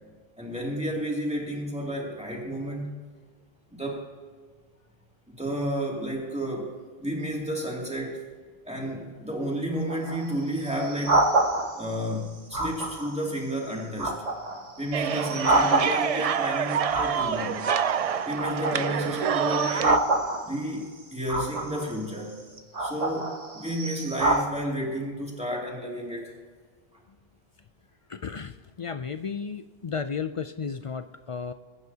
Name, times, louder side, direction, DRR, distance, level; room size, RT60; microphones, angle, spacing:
voice 1, 0.4-2.9 3.8-4.1 5.3-8.2 8.7-11.3 11.7-14.2 14.8-17.7 18.2-20.1 20.4-22.4 22.8-26.3, equal, 5° right, -2 dB, 2.6 m, -31 dB
sound 1, 9.8-12.0 12.5-13.3 13.7-16.4 16.9-18.0 18.3-20.7 21.3-22.0 22.6-24.4, right 2 dB, 40° right, 1.2 m, -27 dB
sound 2, 14.9-20.0, right 8 dB, 55° right, 0.4 m, -27 dB
voice 2, 28.1-31.5, left 6 dB, 55° left, 10 dB, 0.3 m, -34 dB
22.0 x 9.6 x 2.8 m, 1.5 s
omnidirectional pair, 1.1 m